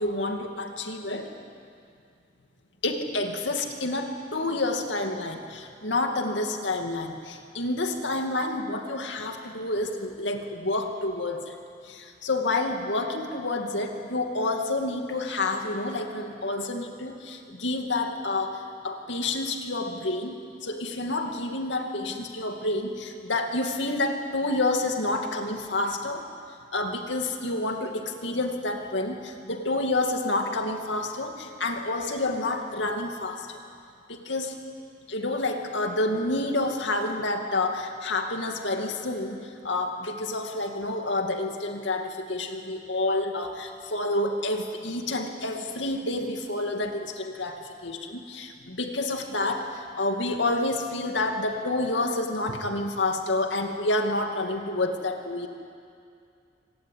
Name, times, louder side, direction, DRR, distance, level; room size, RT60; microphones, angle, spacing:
voice 1, 0.0-1.3 2.8-11.6 11.8-26.3 26.7-33.6 34.1-34.6 35.1-55.5, left 2 dB, 85° left, 4 dB, 2.4 m, -29 dB
25.5 x 18.5 x 9.3 m, 2.4 s
head